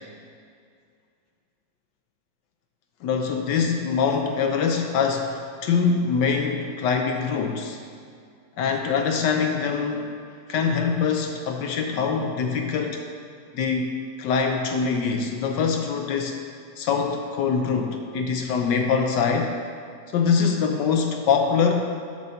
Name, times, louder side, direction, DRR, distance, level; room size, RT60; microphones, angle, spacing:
voice 1, 3.0-7.8 8.6-10.2 10.5-13.0 13.5-13.9 14.2-16.4 16.8-19.5 20.1-21.8, left 5 dB, 70° left, 4 dB, 1.2 m, -24 dB
7.6 x 6.9 x 4.2 m, 2.2 s
omnidirectional pair, 2.1 m